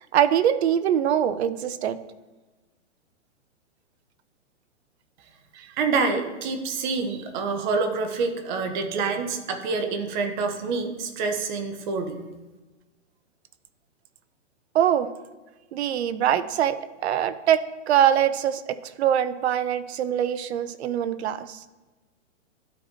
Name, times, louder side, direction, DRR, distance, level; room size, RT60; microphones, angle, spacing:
voice 1, 0.1-2.0 5.6-5.7 14.7-15.1 15.7-21.6, right 10 dB, 60° right, 14 dB, 0.6 m, -23 dB
voice 2, 5.8-12.2, right 4 dB, 40° right, 6 dB, 0.9 m, -27 dB
12.0 x 4.1 x 2.9 m, 1.2 s
hypercardioid pair, 140°, 37 cm